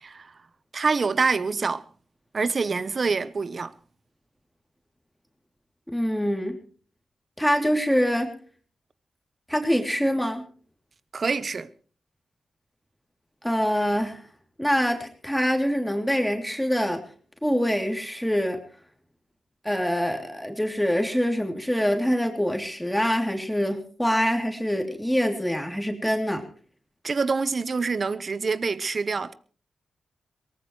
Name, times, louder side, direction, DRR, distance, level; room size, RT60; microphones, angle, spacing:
voice 1, 0.0-0.3 0.7-1.8 2.3-3.7 11.1-11.7 27.0-29.3, right 4 dB, 50° right, 1.0 m, -26 dB
voice 2, 5.9-6.6 7.4-8.3 9.5-10.4 13.4-14.3 14.6-17.0 17.4-18.6 19.6-26.5, equal, 5° left, 3.2 m, -25 dB
22.5 x 19.0 x 3.2 m
cardioid pair, 65°, 0 cm